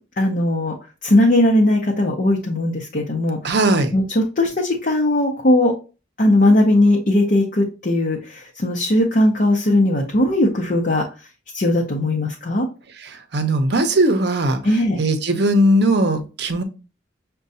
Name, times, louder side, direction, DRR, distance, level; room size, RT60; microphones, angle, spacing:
voice 1, 0.2-0.7 1.0-3.5 3.9-5.7 6.2-11.0 11.5-12.7 14.6-15.0, left 1 dB, 45° left, 0 dB, 0.7 m, -18 dB
voice 2, 3.4-3.9 13.3-14.6 15.0-16.6, right 1 dB, 60° right, 7 dB, 0.7 m, -18 dB
6.3 x 2.2 x 2.6 m, 0.32 s
head